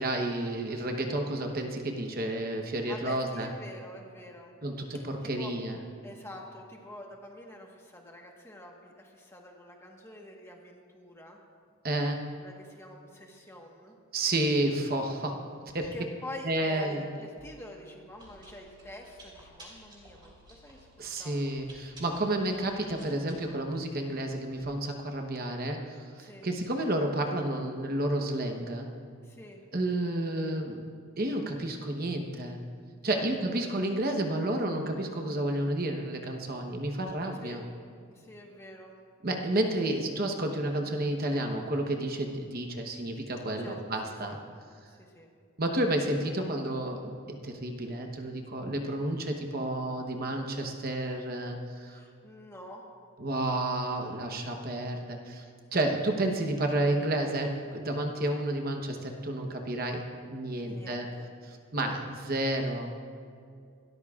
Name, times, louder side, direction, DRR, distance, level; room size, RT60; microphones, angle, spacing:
voice 1, 0.0-3.5 4.6-5.8 11.8-12.4 14.1-15.9 16.4-17.0 21.0-28.9 29.7-30.8 31.2-32.6 33.0-37.6 39.2-44.4 45.6-47.1 47.4-52.0 53.2-55.4 55.7-60.0 60.3-61.1 61.4-62.9, right 1 dB, 45° right, 3 dB, 1.0 m, -31 dB
voice 2, 0.8-1.2 2.9-4.5 4.9-5.5 6.0-11.4 12.4-14.0 15.9-20.9 21.2-21.6 26.2-26.5 29.2-29.6 33.1-33.7 37.4-37.6 38.1-39.0 43.6-43.8 44.1-44.4 44.9-45.3 51.9-52.8 60.6-61.3 61.8-62.0, left 1 dB, 10° left, 0 dB, 1.3 m, -46 dB
Chewing mastication, 17.4-24.6, right 1 dB, 20° right, 3.1 m, -55 dB
27.5 x 13.5 x 2.4 m, 2.3 s
head